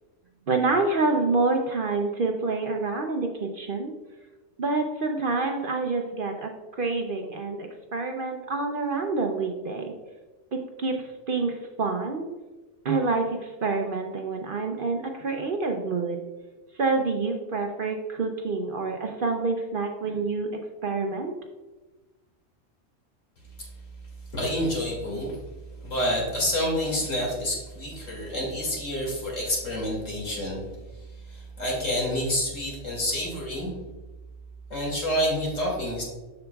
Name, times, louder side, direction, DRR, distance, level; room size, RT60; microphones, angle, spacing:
voice 1, 0.5-3.9 4.6-9.9 10.5-12.2 12.8-16.2 16.8-21.3, right 3 dB, 55° right, 3 dB, 0.7 m, -27 dB
voice 2, 24.3-25.4 25.8-30.6 30.9-33.7 34.7-36.0, equal, 80° left, -3 dB, 2.6 m, -28 dB
7.7 x 6.7 x 2.3 m, 1.2 s
omnidirectional pair, 1.3 m